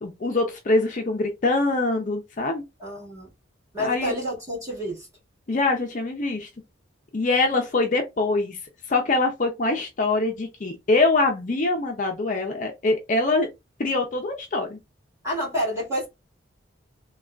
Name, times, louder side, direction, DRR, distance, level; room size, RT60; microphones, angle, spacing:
voice 1, 0.0-2.6 3.8-4.1 5.5-6.5 7.1-8.6 8.9-13.5 13.8-14.8, left 2 dB, 40° left, 0.5 m, -24 dB
voice 2, 2.8-3.3 3.7-5.1 15.2-16.1, equal, 15° right, 1.9 m, -29 dB
3.3 x 2.2 x 2.4 m
head